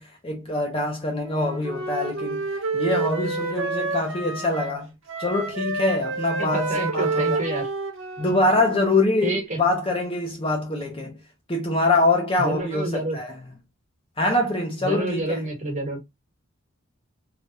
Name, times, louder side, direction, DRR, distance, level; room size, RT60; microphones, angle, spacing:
voice 1, 0.0-2.5 2.7-4.9 5.2-7.4 8.2-11.2 11.5-13.4 14.2-15.4, left 2 dB, 25° left, 0.6 m, -24 dB
Wind instrument woodwind instrument, 1.2-4.8 5.1-9.0, right 3 dB, 60° right, 0.7 m, -29 dB
voice 2, 6.4-7.7 9.2-9.6 12.4-13.2 14.8-16.0, right 2 dB, 35° right, 1.3 m, -28 dB
3.3 x 2.3 x 2.6 m
head